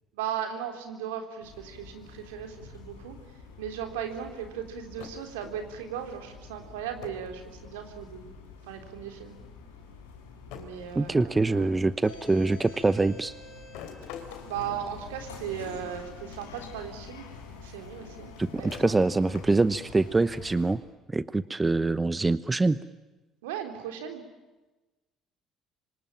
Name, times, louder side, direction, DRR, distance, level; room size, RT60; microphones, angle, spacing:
voice 1, 0.1-3.2 3.6-8.3 8.7-9.4 10.5-11.8 14.5-17.2 17.6-19.0 23.4-24.2, right 9 dB, 80° right, 5 dB, 3.6 m, -37 dB
sound 1, 1.4-20.7, left 5 dB, 90° left, 4.4 m, -47 dB
sound 2, 5.0-5.9 7.0-7.3 7.6-8.2 9.3-9.4 10.5-11.8 13.7-15.6 16.3-16.7 17.1-17.2 18.4-19.8, left 8 dB, 70° left, 3.3 m, -47 dB
voice 2, 11.0-13.3 18.4-20.8 21.1-22.8, right 3 dB, 20° right, 16 dB, 1.0 m, -24 dB
26.5 x 25.0 x 8.9 m, 1.1 s
hypercardioid pair, 55°, 0 cm